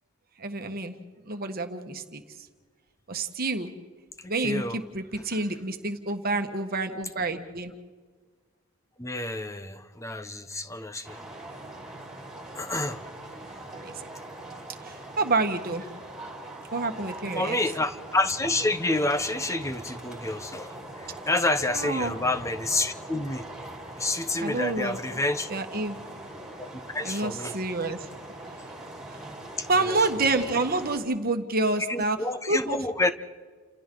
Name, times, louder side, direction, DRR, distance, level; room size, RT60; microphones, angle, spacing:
voice 1, 0.4-0.9 1.2-2.2 3.1-3.7 4.3-7.7 13.8-14.0 14.8-15.8 16.7-17.6 21.7-22.2 24.4-25.0 25.5-26.0 27.0-28.1 29.1-29.2 29.7-32.2 32.5-32.8, right 2 dB, 40° right, 6 dB, 1.5 m, -28 dB
voice 2, 4.2-4.8 9.0-11.2 12.6-13.0 17.4-20.7 21.0-23.5 24.0-25.5 26.6-27.5 29.9-30.0 31.9-33.1, left 2 dB, 15° left, 10 dB, 0.9 m, -28 dB
sound 1, 11.0-31.0, right 1 dB, 5° right, 5.2 m, -42 dB
29.5 x 28.5 x 3.9 m, 1.5 s
head